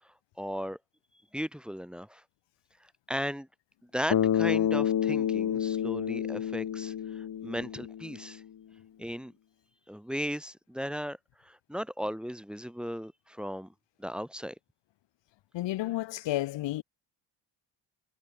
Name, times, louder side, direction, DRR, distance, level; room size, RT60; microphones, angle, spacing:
voice 1, 0.4-0.8 1.3-2.2 3.1-3.5 3.9-8.4 9.0-9.3 9.9-11.2 11.4-13.7 14.0-14.5, equal, ahead, 3.7 m, -36 dB
Bass guitar, 4.1-8.3, left 9 dB, 55° left, 4.5 m, -29 dB
voice 2, 15.5-16.8, left 15 dB, 75° left, 1.8 m, -31 dB
cardioid pair, 95°, 44 cm